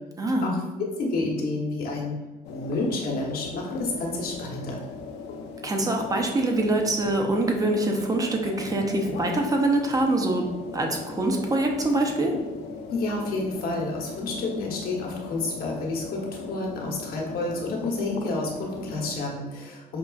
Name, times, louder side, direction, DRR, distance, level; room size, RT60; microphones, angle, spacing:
voice 1, 0.2-0.5 5.6-10.5 10.7-12.4, right 2 dB, 20° right, 2 dB, 0.6 m, -24 dB
voice 2, 1.0-2.1 2.5-4.8 12.9-20.0, left 2 dB, 60° left, -1 dB, 1.0 m, -30 dB
sound 1, 2.4-19.1, left 5 dB, 85° left, 0.5 m, -39 dB
5.2 x 2.4 x 2.3 m, 1.1 s
cardioid pair, 110°, 17 cm